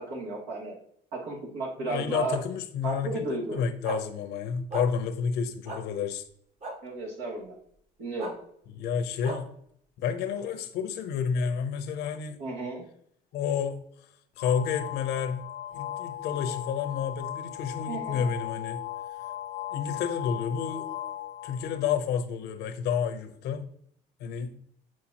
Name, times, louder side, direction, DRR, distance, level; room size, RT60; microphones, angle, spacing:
voice 1, 0.1-0.7 1.1-2.4 2.8-3.6 6.8-7.5 8.0-8.4 12.4-12.8 17.9-18.3, right 2 dB, 85° right, 2.7 m, -33 dB
voice 2, 1.8-6.2 8.7-9.5 10.0-12.4 13.3-13.8 14.4-15.5 15.7-18.8 19.7-20.9 21.4-23.6 24.2-24.6, left 7 dB, 80° left, 0.8 m, -30 dB
sound 1, 3.8-4.0 4.7-4.9 5.7-5.8 6.6-6.7 8.2-8.3 9.2-9.4, right 1 dB, 45° right, 1.6 m, -34 dB
sound 2, 14.4-21.9, left 12 dB, 45° left, 0.4 m, -37 dB
7.4 x 4.6 x 2.9 m
cardioid pair, 110°, 17 cm